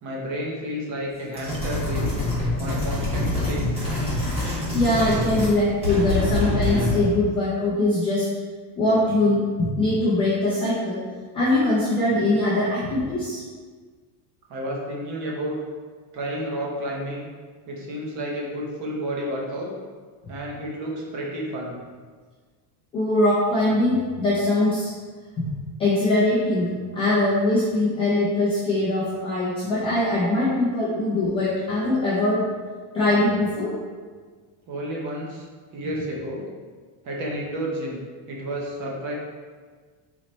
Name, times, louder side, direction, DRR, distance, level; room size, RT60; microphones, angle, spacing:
voice 1, 0.0-2.1 2.6-3.7 14.5-15.6 16.1-17.2 17.7-19.7 20.3-21.8 34.7-35.5 35.7-36.5 37.0-39.1, equal, 40° right, -3 dB, 0.9 m, -31 dB
sound 1, 1.3-5.6 5.8-7.1, left 1 dB, 15° right, 1.3 m, -25 dB
voice 2, 4.7-8.3 8.8-11.0 11.3-13.4 22.9-24.9 25.4-25.5 25.8-32.4 32.9-33.7, left 2 dB, 15° left, -11 dB, 0.3 m, -22 dB
4.0 x 3.0 x 4.2 m, 1.5 s
cardioid pair, 180°, 46 cm